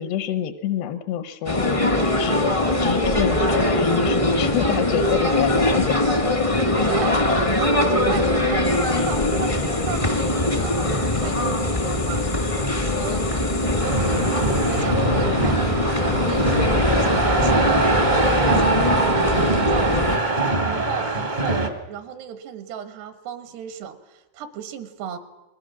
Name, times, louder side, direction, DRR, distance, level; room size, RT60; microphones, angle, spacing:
voice 1, 0.0-2.5 2.8-6.0 9.0-9.1, left 10 dB, 85° left, 10 dB, 3.1 m, -27 dB
sound 1, 1.4-20.2, left 1 dB, 40° left, 0.4 m, -22 dB
voice 2, 6.9-25.2, right 8 dB, 80° right, 9 dB, 3.4 m, -34 dB
sound 2, 8.6-14.8, left 5 dB, 65° left, 0.8 m, -38 dB
sound 3, 13.8-21.7, right 3 dB, 55° right, 0.5 m, -23 dB
28.5 x 21.5 x 6.0 m, 1.1 s
omnidirectional pair, 4.7 m